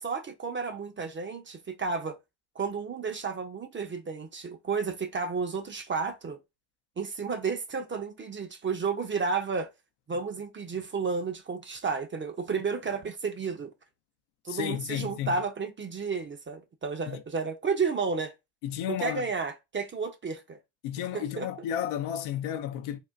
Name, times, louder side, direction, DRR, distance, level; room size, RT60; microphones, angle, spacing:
voice 1, 0.0-2.2 2.5-6.4 7.0-9.7 10.1-13.7 14.4-18.3 18.9-20.6 21.1-21.5, right 5 dB, 25° right, 0.6 m, -32 dB
voice 2, 14.5-15.4 17.1-17.2 18.6-19.3 20.8-23.0, left 10 dB, 75° left, 0.6 m, -32 dB
3.6 x 2.1 x 2.5 m
supercardioid pair, 70°, 48 cm